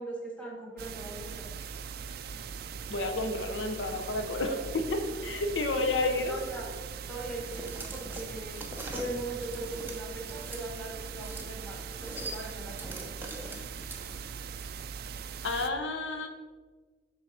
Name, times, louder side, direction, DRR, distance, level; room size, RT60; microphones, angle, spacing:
voice 1, 0.0-1.5 5.8-6.7 7.1-8.6 8.9-13.1, right 2 dB, 5° left, -3 dB, 1.4 m, -40 dB
sound 1, 0.8-15.7, right 6 dB, 55° right, 0.4 m, -41 dB
voice 2, 2.9-6.4 15.4-16.3, left 2 dB, 80° left, 6 dB, 0.7 m, -30 dB
sound 2, 7.5-10.6 11.0-11.5 11.7-14.4, right 2 dB, 10° right, 0.8 m, -43 dB
7.7 x 3.7 x 5.7 m, 1.4 s
head